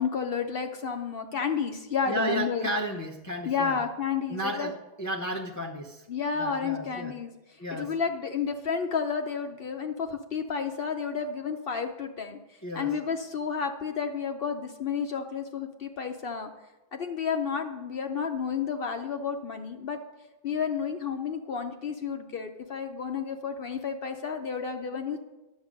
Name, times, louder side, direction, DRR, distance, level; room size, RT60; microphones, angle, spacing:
voice 1, 0.0-2.7 3.4-4.7 6.1-7.3 7.7-12.4 12.7-16.5 16.9-20.0 20.4-25.2, left 6 dB, 60° left, 5 dB, 0.8 m, -31 dB
voice 2, 2.1-3.8 4.3-6.1 6.4-7.1 7.6-7.9 12.6-12.9, right 1 dB, 20° left, -1 dB, 0.5 m, -33 dB
10.0 x 7.3 x 5.1 m, 1.0 s
omnidirectional pair, 1.2 m